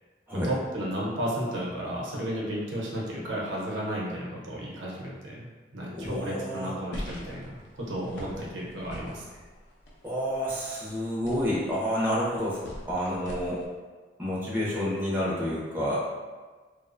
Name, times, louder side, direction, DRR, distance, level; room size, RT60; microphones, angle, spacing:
voice 1, 0.3-9.4, right 1 dB, 80° right, -4 dB, 0.6 m, -33 dB
voice 2, 5.9-6.7 10.0-12.6 12.9-13.6 14.2-16.0, equal, 10° right, -7 dB, 0.4 m, -29 dB
sound 1, 6.9-13.7, equal, 70° left, 0.5 m, -43 dB
2.7 x 2.0 x 2.4 m, 1.4 s
head